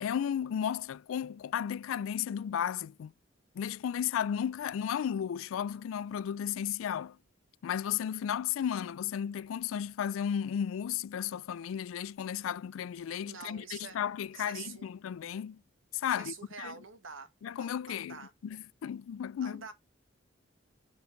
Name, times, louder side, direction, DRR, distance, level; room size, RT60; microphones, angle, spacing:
voice 1, 0.0-3.1 3.6-7.2 7.6-15.6 15.9-16.7 17.4-19.6, left 9 dB, 90° left, 0.3 m, -34 dB
voice 2, 13.2-14.0 14.3-14.9 16.1-17.3 17.6-18.3 19.4-19.7, right 6 dB, 80° right, 1.5 m, -46 dB
6.4 x 5.3 x 3.9 m
head